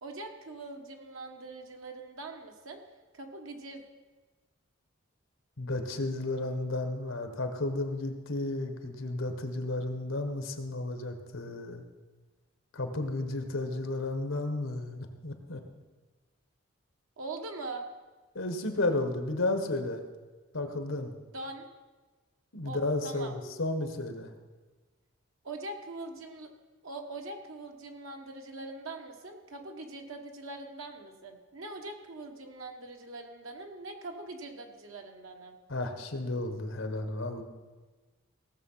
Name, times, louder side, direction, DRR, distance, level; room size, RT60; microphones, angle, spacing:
voice 1, 0.0-2.8 3.1-3.8 17.2-17.9 21.3-21.7 22.6-23.3 25.4-26.5 26.8-35.6, right 2 dB, 85° right, 3 dB, 1.4 m, -42 dB
voice 2, 5.6-11.8 12.7-15.6 18.3-20.0 20.5-21.1 22.5-24.3 35.7-37.4, left 2 dB, 75° left, 7 dB, 1.4 m, -33 dB
17.5 x 6.9 x 5.7 m, 1.3 s
head